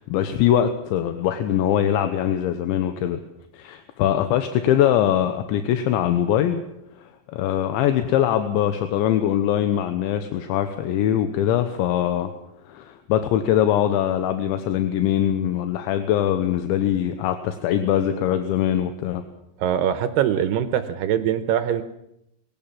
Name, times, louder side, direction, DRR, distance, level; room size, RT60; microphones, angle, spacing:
voice 1, 0.0-3.2 3.5-6.6 7.0-12.3 12.7-19.2, left 10 dB, 80° left, 8 dB, 3.3 m, -22 dB
voice 2, 19.6-21.8, right 10 dB, 75° right, 10 dB, 2.7 m, -22 dB
21.5 x 17.5 x 7.3 m, 0.80 s
omnidirectional pair, 5.4 m